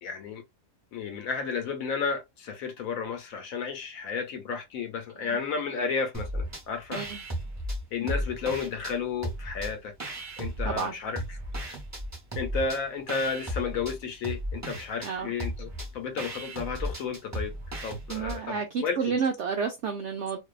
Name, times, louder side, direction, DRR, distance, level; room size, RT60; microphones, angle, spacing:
voice 1, 0.0-0.4 0.9-7.0 7.9-9.9 10.4-11.4 11.6-11.8 12.4-17.5 17.8-19.0, left 5 dB, 70° left, 0.9 m, -32 dB
sound 1, 6.1-6.6 6.9-8.9 9.2-10.9 11.2-18.4, equal, 20° right, 0.5 m, -35 dB
voice 2, 15.0-15.3 18.1-20.4, right 6 dB, 75° right, 0.6 m, -30 dB
2.6 x 2.2 x 2.3 m
omnidirectional pair, 1.7 m